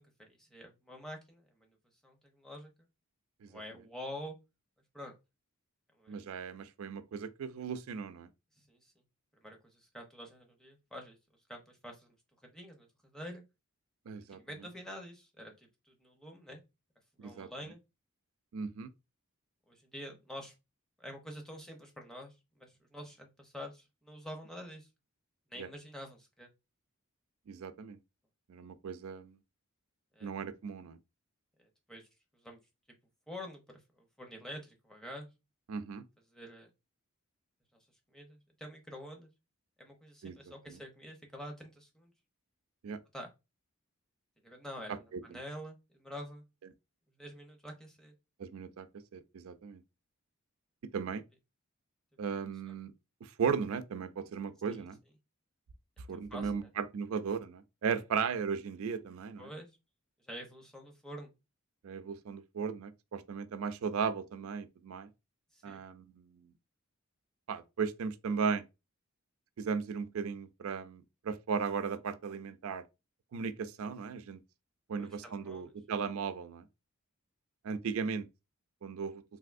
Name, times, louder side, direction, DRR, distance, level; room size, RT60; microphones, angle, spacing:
voice 1, 0.0-1.7 2.0-2.9 3.5-4.4 4.9-5.1 5.9-6.4 8.7-8.9 9.4-11.2 11.5-12.1 12.5-12.9 13.1-13.4 14.3-16.6 17.2-17.8 19.7-20.5 21.0-24.9 25.5-26.5 30.1-30.3 31.6-32.1 32.4-32.6 33.3-33.6 34.0-35.3 36.3-36.7 38.1-39.3 39.8-42.1 43.1-43.3 44.4-46.4 47.2-48.1 52.7-52.8 54.7-54.9 56.1-56.7 59.4-59.7 60.3-61.3 65.5-65.8 74.9-75.7, equal, 5° left, 0.6 m, -47 dB
voice 2, 6.1-8.3 14.1-14.4 17.2-17.5 18.5-18.9 25.6-25.7 27.5-28.0 28.5-29.4 30.2-31.0 35.7-36.0 40.2-40.4 40.7-40.8 42.8-43.0 44.9-45.4 48.4-48.9 49.1-49.8 50.9-51.2 52.2-52.9 53.2-55.0 56.1-59.5 61.8-65.1 65.6-66.5 67.5-68.6 69.6-72.8 73.3-74.4 74.9-76.6 77.6-78.3 78.8-79.2, right 6 dB, 70° right, 0.4 m, -36 dB
3.4 x 2.6 x 2.5 m
head